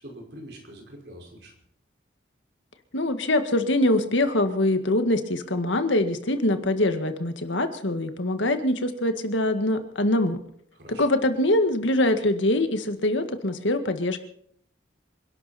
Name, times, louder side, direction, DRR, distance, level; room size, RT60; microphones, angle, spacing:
voice 1, 0.0-1.5 10.8-11.0, right 1 dB, 60° right, 1 dB, 5.3 m, -44 dB
voice 2, 2.9-10.4 11.0-14.2, left 1 dB, 75° left, 8 dB, 1.8 m, -23 dB
27.5 x 12.0 x 4.3 m, 0.66 s
head